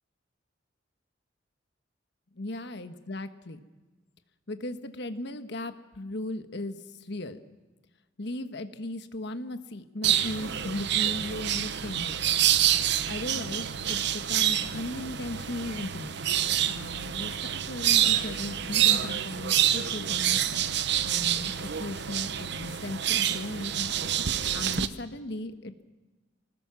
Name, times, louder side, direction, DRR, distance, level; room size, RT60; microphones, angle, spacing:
voice 1, 2.3-3.6 4.5-7.4 8.2-12.2 13.1-16.2 16.7-20.4 21.0-23.9 24.5-25.8, left 1 dB, 65° left, 9 dB, 1.3 m, -37 dB
sound 1, 10.0-24.9, right 10 dB, 65° right, 0.8 m, -27 dB
25.5 x 19.5 x 6.3 m, 1.2 s
head